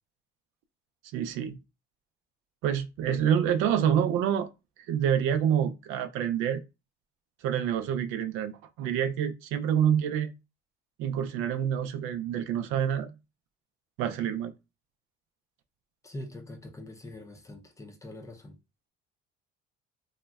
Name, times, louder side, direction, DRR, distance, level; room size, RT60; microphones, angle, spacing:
voice 1, 1.1-1.6 2.6-4.5 4.9-6.6 7.4-10.3 11.0-13.1 14.0-14.5, right 9 dB, 90° right, 0.4 m, -27 dB
voice 2, 16.0-18.6, left 1 dB, 15° left, 0.5 m, -43 dB
3.6 x 2.0 x 2.2 m
cardioid pair, 135°, 20 cm